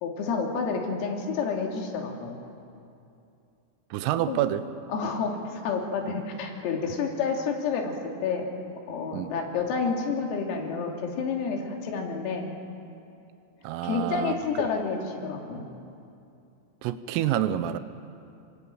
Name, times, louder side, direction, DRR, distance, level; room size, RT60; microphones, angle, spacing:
voice 1, 0.0-2.4 4.3-4.4 4.9-8.5 8.9-12.5 13.8-15.6, left 5 dB, 90° left, 1 dB, 5.4 m, -29 dB
voice 2, 3.9-4.7 9.1-9.3 13.6-14.4 16.8-17.8, right 12 dB, 80° right, 12 dB, 3.5 m, -27 dB
27.5 x 22.0 x 9.0 m, 2.6 s
omnidirectional pair, 5.9 m